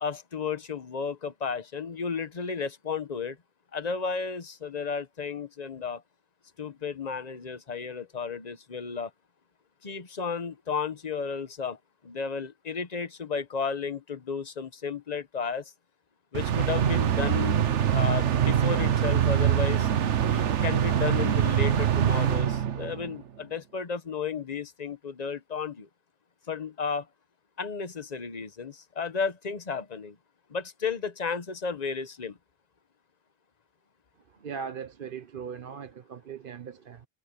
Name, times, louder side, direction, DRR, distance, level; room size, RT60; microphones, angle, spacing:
voice 1, 0.0-3.4 3.7-6.0 6.6-9.1 9.8-11.8 12.0-15.7 16.3-17.6 17.9-19.9 20.3-25.9 26.5-27.1 27.6-30.2 30.5-32.4, left 5 dB, 35° left, 1.1 m, -33 dB
sound 1, 16.3-23.2, right 9 dB, 70° right, 1.2 m, -24 dB
voice 2, 34.4-37.1, right 7 dB, 50° right, 0.9 m, -39 dB
omnidirectional pair, 1.3 m